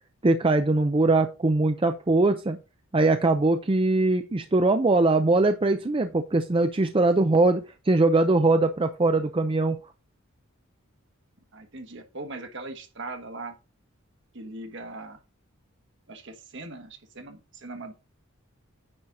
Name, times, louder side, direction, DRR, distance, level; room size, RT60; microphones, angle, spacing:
voice 1, 0.2-2.6 2.9-9.8, right 2 dB, 25° right, 0.5 m, -22 dB
voice 2, 11.5-13.5 14.3-15.2 16.1-17.9, right 2 dB, 60° right, 1.6 m, -40 dB
9.8 x 4.1 x 4.8 m
head